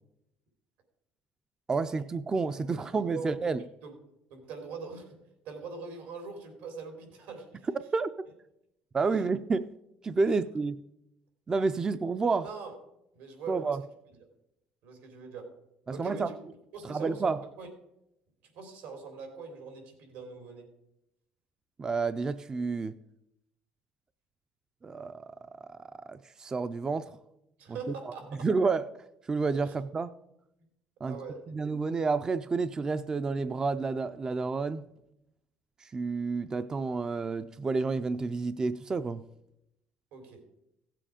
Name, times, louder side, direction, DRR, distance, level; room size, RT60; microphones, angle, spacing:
voice 1, 1.7-3.6 7.9-8.1 8.9-9.6 10.0-10.8 11.5-12.5 13.5-13.8 15.9-16.3 16.8-17.4 21.8-23.0 24.8-25.3 25.7-25.8 26.1-27.1 28.4-28.8 29.3-30.1 31.0-31.2 31.5-34.9 35.8-39.2, right 4 dB, 20° right, 12 dB, 0.3 m, -29 dB
voice 2, 2.7-3.5 3.8-3.9 4.3-5.2 5.4-7.7 9.1-9.3 10.2-10.4 12.4-12.7 13.1-13.8 14.8-15.6 15.9-16.4 16.7-17.7 18.5-20.7 27.6-28.5 29.6-29.7 31.0-31.4 40.1-40.4, right 4 dB, 85° right, 4 dB, 3.4 m, -42 dB
16.0 x 7.6 x 5.0 m, 0.85 s
cardioid pair, 140°, 3 cm